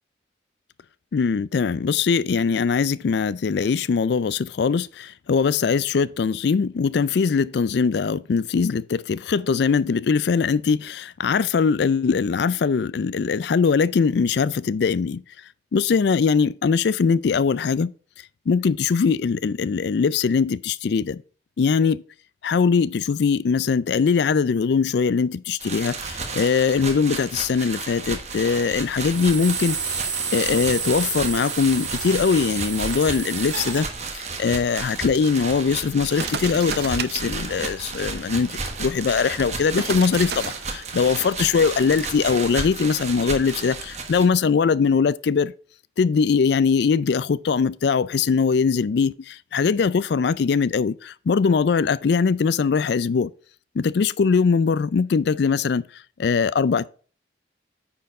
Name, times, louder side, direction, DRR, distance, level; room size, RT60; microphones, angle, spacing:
voice 1, 1.1-15.2 15.7-17.9 18.5-21.2 21.6-22.0 22.4-30.0 30.3-33.9 34.1-45.5 46.0-53.3 53.8-55.8 56.2-56.9, left 5 dB, 60° left, 0.4 m, -21 dB
sound 1, 25.6-44.3, right 4 dB, 35° right, 1.2 m, -33 dB
sound 2, 29.0-33.8, right 6 dB, 80° right, 1.7 m, -30 dB
sound 3, 34.2-42.4, right 7 dB, 55° right, 0.5 m, -37 dB
9.4 x 4.5 x 4.8 m
head